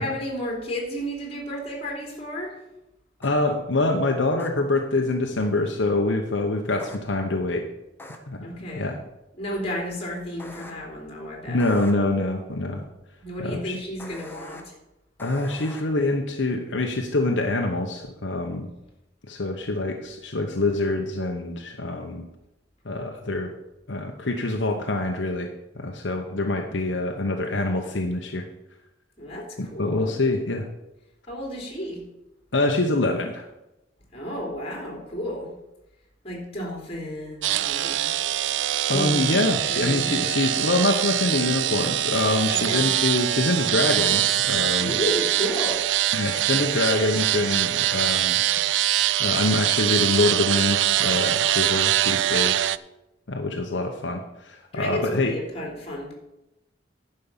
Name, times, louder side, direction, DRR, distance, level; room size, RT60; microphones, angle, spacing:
voice 1, 0.0-2.5 8.4-8.9 9.4-11.6 13.2-14.7 29.2-30.1 31.3-32.0 34.1-35.5 36.2-38.1 38.9-40.4 42.5-42.9 44.8-45.8 54.7-56.1, equal, 35° left, -1 dB, 3.3 m, -32 dB
voice 2, 3.2-7.7 8.3-8.5 8.8-9.0 11.5-12.8 13.4-13.8 15.2-18.7 19.3-22.2 22.8-23.5 23.9-25.5 25.7-28.5 29.6-30.7 32.5-33.5 38.9-45.0 46.1-48.4 49.2-52.7 53.3-55.3, left 2 dB, 75° left, 3 dB, 1.0 m, -25 dB
sound 1, 3.2-3.3 4.4-4.5 6.8-7.0 8.0-8.2 10.4-10.7 11.6-11.9 14.0-14.6 15.2-15.8, left 1 dB, 10° left, 1.1 m, -42 dB
sound 2, 37.4-52.8, right 13 dB, 70° right, 0.3 m, -23 dB
10.5 x 5.5 x 7.3 m, 0.92 s
head